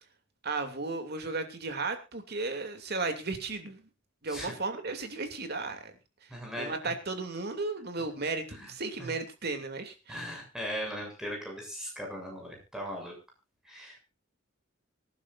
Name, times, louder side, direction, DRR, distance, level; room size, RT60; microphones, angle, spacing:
voice 1, 0.4-3.8 4.2-5.8 6.6-10.2, right 3 dB, 55° right, 6 dB, 2.8 m, -34 dB
voice 2, 6.3-6.9 8.5-8.7 9.0-9.1 10.1-13.1 13.6-14.0, equal, 5° right, 0 dB, 7.4 m, -38 dB
25.0 x 11.0 x 2.6 m, 0.29 s
head